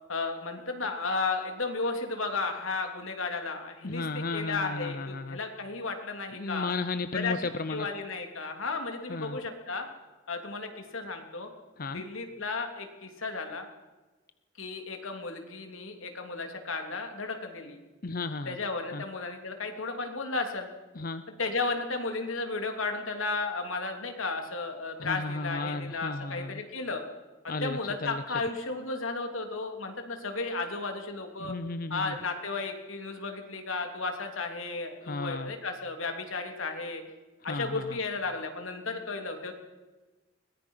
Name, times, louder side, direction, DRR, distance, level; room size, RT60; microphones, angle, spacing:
voice 1, 0.1-6.7 7.1-7.4 7.7-9.9 10.3-11.5 11.9-13.7 14.6-17.8 18.4-20.7 21.4-27.0 27.4-31.5 31.9-37.0 37.4-39.5, left 3 dB, 90° left, 5 dB, 3.3 m, -34 dB
voice 2, 3.8-5.4 6.3-7.9 9.1-9.4 11.8-12.0 18.0-18.6 18.9-19.0 21.0-21.2 25.0-26.6 27.5-28.2 31.4-32.2 35.0-35.5 37.5-38.0, left 3 dB, 45° left, 11 dB, 0.7 m, -34 dB
22.5 x 20.5 x 5.7 m, 1.2 s
head